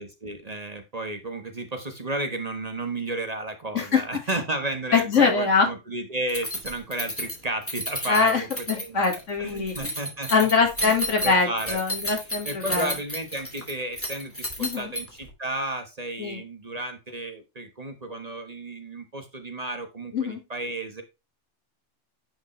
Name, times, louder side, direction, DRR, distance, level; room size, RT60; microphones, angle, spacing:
voice 1, 0.0-9.0 9.4-10.5 10.8-11.8 12.4-21.0, right 2 dB, 35° right, 6 dB, 1.3 m, -33 dB
voice 2, 4.9-5.7 8.1-9.9 10.3-12.9 14.6-14.9 16.2-16.4 20.1-20.4, left 5 dB, 80° left, 2 dB, 2.3 m, -23 dB
Keys jangling, 6.3-15.3, equal, 10° left, 2.5 m, -33 dB
10.5 x 5.2 x 3.1 m, 0.25 s
omnidirectional pair, 1.3 m